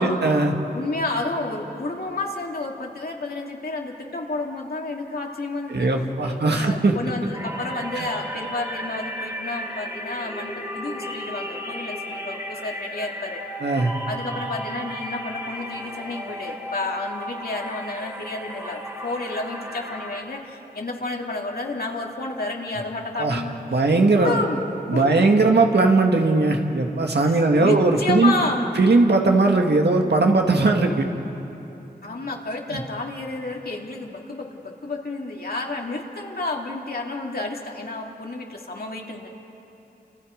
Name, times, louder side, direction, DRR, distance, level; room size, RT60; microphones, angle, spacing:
voice 1, 0.2-0.5 5.7-7.0 8.0-8.1 13.6-13.9 23.2-23.4 23.7-24.4 24.9-28.3 28.8-31.1 32.7-32.8, right 3 dB, 85° right, 2 dB, 2.0 m, -19 dB
voice 2, 0.7-5.9 6.2-13.4 14.1-24.6 24.9-25.3 27.2-28.7 32.0-39.3, left 2 dB, 65° left, 0 dB, 2.7 m, -31 dB
sound 1, 7.3-20.2, equal, 20° right, 3.1 m, -34 dB
30.0 x 28.0 x 5.2 m, 3.0 s
wide cardioid pair, 75°, 17 cm